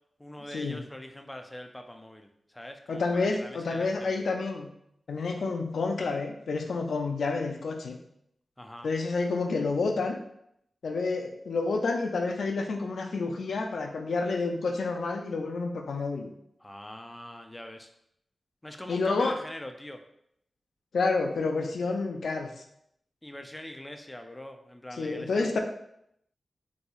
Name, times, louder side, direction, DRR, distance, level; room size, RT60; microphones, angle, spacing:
voice 1, 0.2-4.1 8.6-8.9 16.6-17.9 18.6-20.0 23.2-25.6, left 1 dB, 15° left, 5 dB, 0.3 m, -43 dB
voice 2, 2.9-4.7 5.1-8.0 8.8-10.2 10.8-16.3 18.9-19.4 20.9-22.5 25.0-25.6, left 3 dB, 85° left, 3 dB, 0.4 m, -29 dB
4.1 x 2.6 x 2.3 m, 0.75 s
wide cardioid pair, 105°, 0 cm